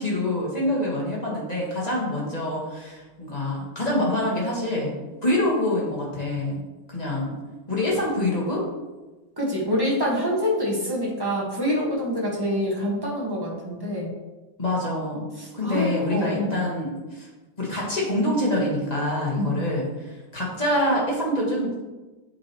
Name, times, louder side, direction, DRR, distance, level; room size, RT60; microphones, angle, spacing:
voice 1, 0.0-4.9 5.2-6.6 6.9-7.4 7.7-8.6 14.6-15.3 15.5-17.3 17.6-19.9 20.3-21.8, left 1 dB, 25° left, -4 dB, 1.5 m, -25 dB
voice 2, 9.4-14.1 15.4-16.6 19.4-19.5, equal, 15° right, -4 dB, 1.3 m, -26 dB
8.6 x 4.5 x 3.0 m, 1.2 s
omnidirectional pair, 2.0 m